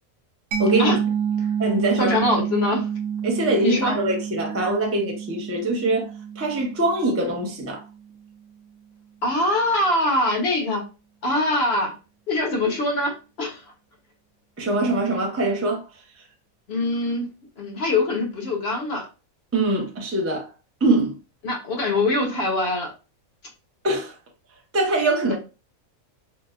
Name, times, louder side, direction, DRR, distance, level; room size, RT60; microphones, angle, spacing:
Mallet percussion, 0.5-7.9, right 8 dB, 70° right, 0.9 m, -28 dB
voice 1, 0.6-1.0 1.6-2.2 3.2-6.1 6.4-7.8 14.6-15.8 19.5-20.5 20.8-21.1 23.8-24.1 24.7-25.4, right 2 dB, 15° right, 0.4 m, -23 dB
voice 2, 2.0-2.9 3.6-3.9 9.2-10.8 11.2-11.9 12.3-13.6 16.7-17.3 17.6-19.1 21.4-22.9, left 2 dB, 55° left, 0.9 m, -23 dB
4.0 x 2.1 x 2.3 m
omnidirectional pair, 1.5 m